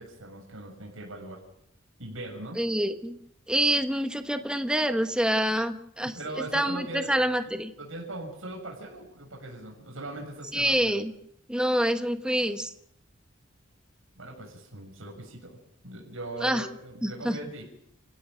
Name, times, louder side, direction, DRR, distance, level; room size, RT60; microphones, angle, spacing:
voice 1, 0.0-1.4 2.0-2.6 6.0-7.3 7.8-11.0 14.2-15.6 15.8-17.6, right 2 dB, 85° right, 0 dB, 6.7 m, -40 dB
voice 2, 2.6-3.2 3.5-6.1 6.5-7.7 10.5-11.1 11.5-12.7 16.4-16.7 17.0-17.4, right 1 dB, 5° right, 8 dB, 1.3 m, -26 dB
29.0 x 16.0 x 6.4 m, 0.72 s
head